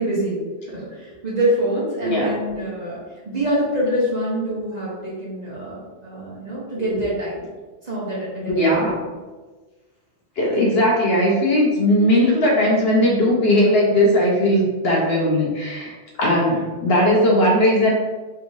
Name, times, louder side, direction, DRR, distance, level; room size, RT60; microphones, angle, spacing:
voice 1, 0.0-3.0 3.3-7.5 7.8-8.9, right 1 dB, 40° right, -7 dB, 0.8 m, -25 dB
voice 2, 2.0-2.3 8.5-9.0 10.4-17.9, left 1 dB, 60° left, -3 dB, 0.9 m, -18 dB
3.5 x 2.9 x 2.6 m, 1.3 s
omnidirectional pair, 1.3 m